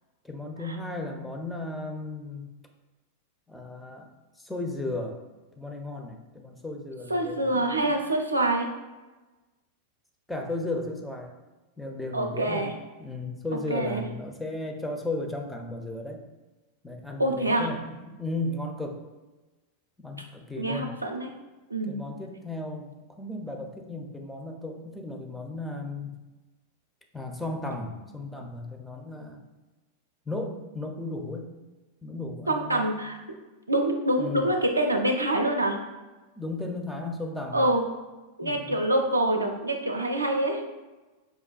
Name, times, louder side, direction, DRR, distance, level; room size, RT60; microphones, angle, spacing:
voice 1, 0.2-2.5 3.5-4.1 4.4-5.2 5.6-7.9 10.3-11.3 11.8-12.7 13.0-16.2 16.8-19.0 20.0-20.9 21.9-26.1 27.1-29.4 30.3-31.5 32.0-32.9 34.2-34.4 36.4-37.7 38.4-38.8, left 2 dB, 5° left, 2 dB, 0.4 m, -35 dB
voice 2, 7.1-8.7 12.1-12.7 13.7-14.0 17.2-17.7 20.6-21.3 21.7-22.0 32.5-33.2 33.7-35.8 37.5-37.8 38.4-40.6, right 1 dB, 85° right, 2 dB, 0.4 m, -25 dB
4.8 x 2.2 x 2.2 m, 1.2 s
figure-of-eight pair, 90°, 0 cm